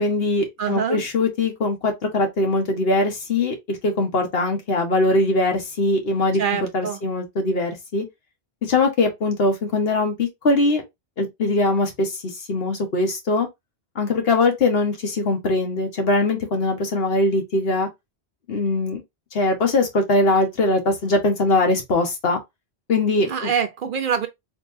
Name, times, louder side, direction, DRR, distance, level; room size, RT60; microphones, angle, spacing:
voice 1, 0.0-6.4 6.7-8.0 8.6-10.8 11.2-13.5 13.9-17.9 18.5-19.0 19.3-22.4 22.9-23.5, left 2 dB, 65° left, 1.4 m, -21 dB
voice 2, 0.6-1.0 6.4-7.0 23.3-24.3, right 7 dB, 60° right, 0.6 m, -25 dB
4.1 x 3.2 x 2.6 m
omnidirectional pair, 1.1 m